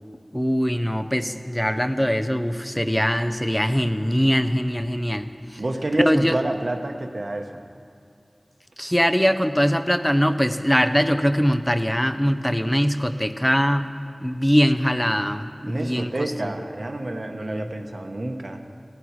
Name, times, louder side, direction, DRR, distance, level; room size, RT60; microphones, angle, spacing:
voice 1, 0.3-5.6 6.0-6.4 8.8-13.9 14.2-16.5 17.4-17.7, equal, 10° left, 8 dB, 0.6 m, -22 dB
voice 2, 5.6-7.6 15.7-18.6, right 1 dB, 70° right, 5 dB, 0.9 m, -28 dB
17.5 x 11.5 x 3.1 m, 2.4 s
wide cardioid pair, 45°, 0 cm